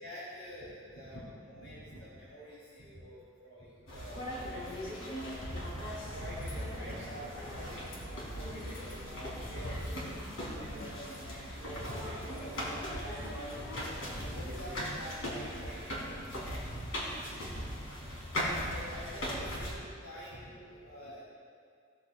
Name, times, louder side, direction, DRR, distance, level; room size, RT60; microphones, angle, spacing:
voice 1, 0.0-16.3 17.1-21.2, equal, 65° left, -8 dB, 3.1 m, -47 dB
sound 1, 3.9-19.8, equal, 90° left, 3.3 m, -39 dB
18.0 x 13.5 x 2.4 m, 2.2 s
head